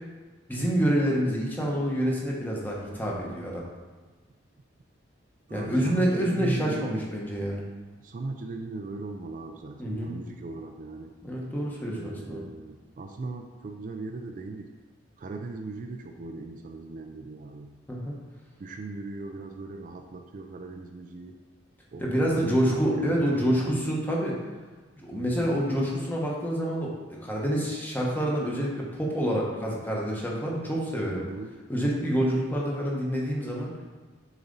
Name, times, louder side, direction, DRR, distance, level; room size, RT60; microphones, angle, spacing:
voice 1, 0.5-3.7 5.5-7.6 9.8-10.1 11.2-12.4 17.9-18.1 22.0-24.4 25.0-31.2 31.7-33.7, equal, 10° left, -3 dB, 1.0 m, -27 dB
voice 2, 5.5-7.1 8.0-11.1 11.9-14.7 15.2-17.7 18.6-21.4 21.9-23.8 25.1-25.6 31.1-31.5, right 3 dB, 45° right, 4 dB, 0.3 m, -38 dB
7.0 x 4.1 x 3.9 m, 1.3 s
head